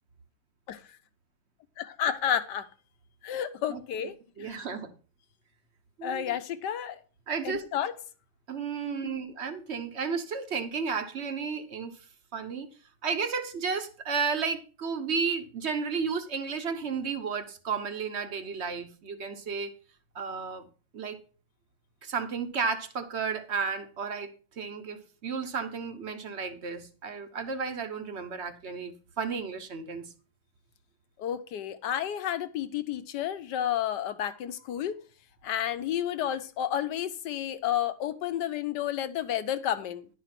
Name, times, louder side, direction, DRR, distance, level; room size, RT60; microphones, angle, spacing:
voice 1, 1.8-2.7 3.2-4.7 6.0-7.0 7.4-7.9 8.9-9.2 31.2-35.0 35.4-40.1, left 10 dB, 65° left, 1.2 m, -31 dB
voice 2, 4.4-4.9 6.0-6.3 7.3-7.6 8.5-12.0 12.3-12.7 13.0-19.7 20.1-20.7 20.9-21.2 22.0-30.1, right 5 dB, 45° right, 0.9 m, -33 dB
11.0 x 5.0 x 5.9 m
omnidirectional pair, 2.3 m